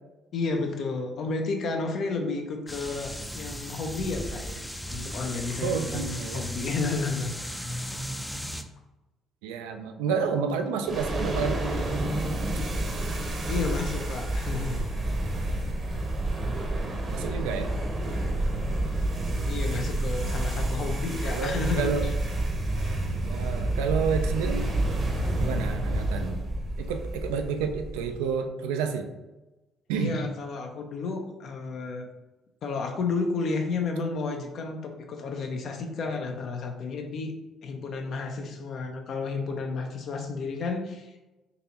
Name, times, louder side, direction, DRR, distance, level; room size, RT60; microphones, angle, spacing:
voice 1, 0.3-7.3 13.5-15.2 19.5-22.1 30.0-32.1 32.6-37.3 37.6-41.2, left 4 dB, 60° left, 4 dB, 0.6 m, -32 dB
sound 1, 2.7-8.6, equal, 5° left, 0.4 m, -36 dB
voice 2, 5.6-6.5 9.4-11.6 17.1-17.7 18.1-18.2 21.3-22.1 23.3-24.7 25.4-26.4 26.8-29.1 29.9-30.2, right 6 dB, 80° right, 7 dB, 0.3 m, -30 dB
sound 2, 10.8-28.2, right 1 dB, 45° right, 0.8 m, -29 dB
3.9 x 2.8 x 2.9 m, 1.1 s
hypercardioid pair, 50°, 0 cm